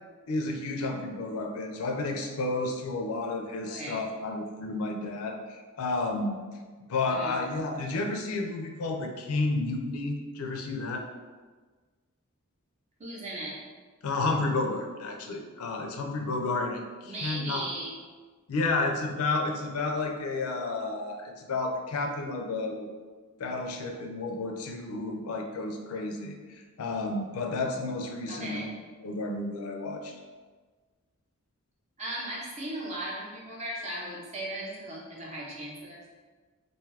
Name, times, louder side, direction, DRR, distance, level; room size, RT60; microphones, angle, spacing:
voice 1, 0.3-6.4 6.9-11.1 14.0-17.6 18.5-22.9 23.4-28.7 29.0-30.1, left 3 dB, 80° left, 3 dB, 0.4 m, -31 dB
voice 2, 3.7-4.0 7.1-7.3 13.0-13.6 17.0-17.9 28.3-28.7 32.0-36.1, right 1 dB, 30° right, -5 dB, 0.7 m, -37 dB
2.5 x 2.3 x 3.3 m, 1.4 s
head